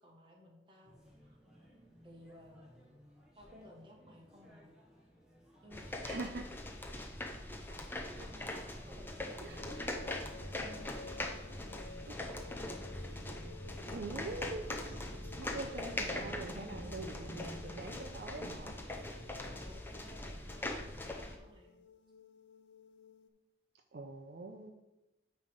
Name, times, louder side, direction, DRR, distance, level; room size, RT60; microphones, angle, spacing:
voice 1, 0.0-1.4 2.0-2.7 3.3-4.7 5.6-6.3 8.1-9.9 10.3-11.3 19.3-21.7, left 1 dB, 30° right, -1 dB, 1.4 m, -57 dB
sound 1, 0.8-18.0, equal, 5° right, 1.5 m, -57 dB
sound 2, 5.7-21.4, left 1 dB, 10° left, 0.6 m, -42 dB
voice 2, 6.0-6.4 9.4-9.7 12.1-12.2 13.9-14.8 15.1-18.7 23.9-24.7, right 3 dB, 55° right, 4 dB, 0.5 m, -44 dB
sound 3, 9.6-23.3, left 4 dB, 75° left, 0.5 m, -55 dB
9.2 x 3.4 x 5.2 m, 0.99 s
head